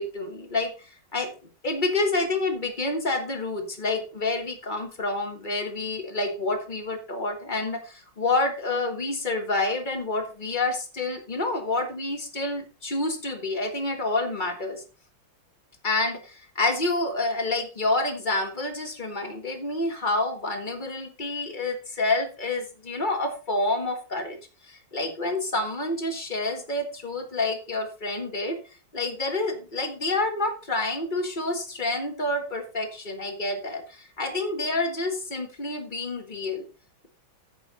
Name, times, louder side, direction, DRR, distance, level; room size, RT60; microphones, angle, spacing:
voice 1, 0.0-1.3 1.6-14.8 15.8-24.4 24.6-28.6 28.9-36.7, left 2 dB, 25° left, 5 dB, 1.6 m, -28 dB
10.0 x 8.0 x 4.2 m, 0.35 s
omnidirectional pair, 2.2 m